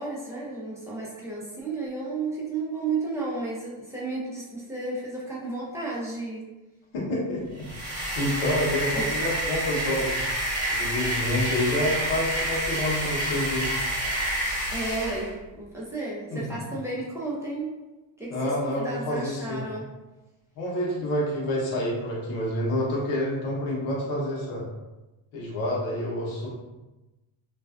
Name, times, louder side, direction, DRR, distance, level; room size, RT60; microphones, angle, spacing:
voice 1, 0.0-6.5 9.0-9.1 14.7-17.8 18.2-19.9, right 3 dB, 5° right, -6 dB, 0.6 m, -33 dB
voice 2, 6.9-10.2 10.7-13.7 16.3-16.6 18.3-19.6 20.6-24.6 25.3-26.5, left 1 dB, 90° left, -5 dB, 0.9 m, -28 dB
sound 1, 7.6-15.3, right 1 dB, 35° right, 1.2 m, -28 dB
2.5 x 2.1 x 2.3 m, 1.1 s
cardioid pair, 100°, 49 cm